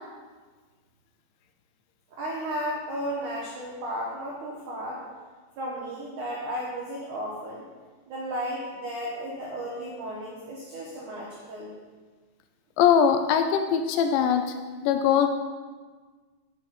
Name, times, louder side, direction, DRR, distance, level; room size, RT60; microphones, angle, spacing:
voice 1, 2.1-5.0 5.6-7.7 8.1-11.8, equal, 75° right, -4 dB, 1.8 m, -34 dB
voice 2, 12.8-14.6 14.8-15.3, left 8 dB, 80° left, 6 dB, 2.7 m, -21 dB
9.2 x 7.9 x 4.9 m, 1.4 s
omnidirectional pair, 5.4 m